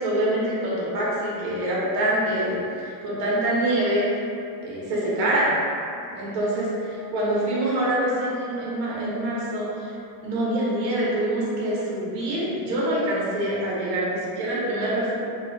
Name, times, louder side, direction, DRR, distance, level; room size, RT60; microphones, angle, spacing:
voice 1, 0.0-4.0 4.6-5.6 6.1-9.9 10.2-15.2, right 1 dB, 70° right, -6 dB, 0.9 m, -25 dB
2.4 x 2.1 x 2.6 m, 2.6 s
supercardioid pair, 125°, 49 cm